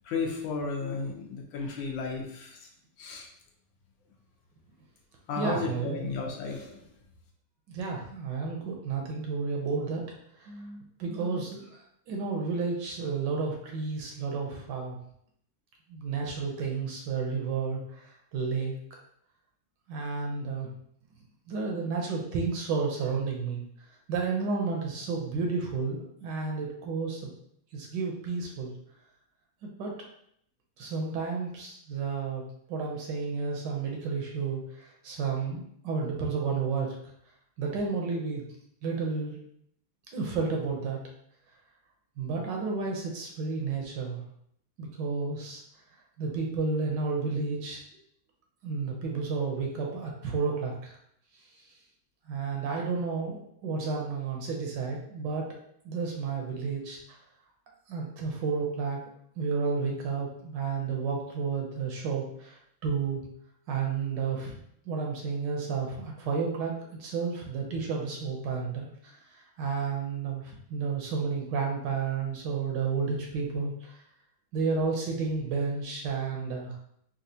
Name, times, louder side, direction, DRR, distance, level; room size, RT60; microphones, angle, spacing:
voice 1, 0.0-2.6 3.0-3.3 5.3-6.8, left 4 dB, 80° left, 0 dB, 1.4 m, -33 dB
voice 2, 5.3-6.2 7.7-10.0 10.4-11.7 12.1-15.0 15.9-18.8 19.9-20.7 21.5-23.6 24.1-27.3 27.7-28.7 29.6-30.0 30.8-32.4 32.7-36.9 37.6-38.4 38.8-39.4 40.1-41.0 42.2-44.2 44.8-45.6 46.2-47.8 48.6-51.0 52.3-55.5 55.8-57.2 57.9-59.0 59.4-63.2 63.7-64.5 64.9-66.7 67.0-69.1 69.6-73.9 74.5-76.7, right 4 dB, 70° right, 0 dB, 1.2 m, -31 dB
4.2 x 2.3 x 2.6 m, 0.70 s
omnidirectional pair, 2.1 m